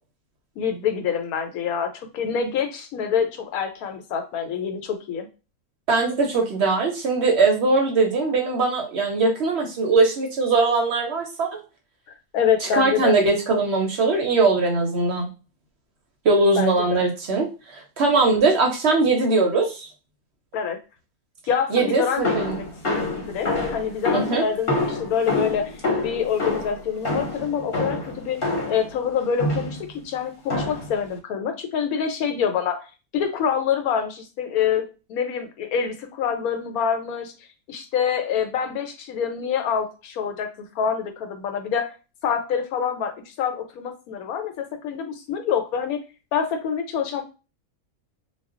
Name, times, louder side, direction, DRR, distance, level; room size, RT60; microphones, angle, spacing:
voice 1, 0.6-5.3 12.3-13.2 16.6-17.0 20.5-20.8 21.5-25.7 26.0-32.8 33.1-37.3 37.7-41.9 42.2-46.0 46.3-47.2, left 7 dB, 85° left, 6 dB, 1.1 m, -26 dB
voice 2, 5.9-11.5 12.6-15.3 16.2-19.9 21.7-22.6 24.1-24.4, right 3 dB, 65° right, 1 dB, 0.7 m, -21 dB
sound 1, 22.2-28.9 29.4-29.9 30.5-31.0, left 2 dB, 45° left, 0.9 m, -27 dB
2.3 x 2.1 x 3.6 m, 0.31 s
omnidirectional pair, 1.5 m